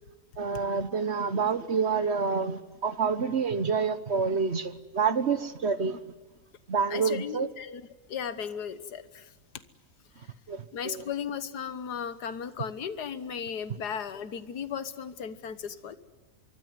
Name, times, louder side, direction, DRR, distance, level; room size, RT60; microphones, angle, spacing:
voice 1, 0.4-6.0 6.7-7.5 10.5-11.0, right 5 dB, 45° right, 13 dB, 1.2 m, -28 dB
voice 2, 6.9-7.8 8.1-9.3 10.7-16.0, left 7 dB, 85° left, 13 dB, 1.8 m, -36 dB
25.0 x 23.5 x 9.5 m, 1.2 s
omnidirectional pair, 1.7 m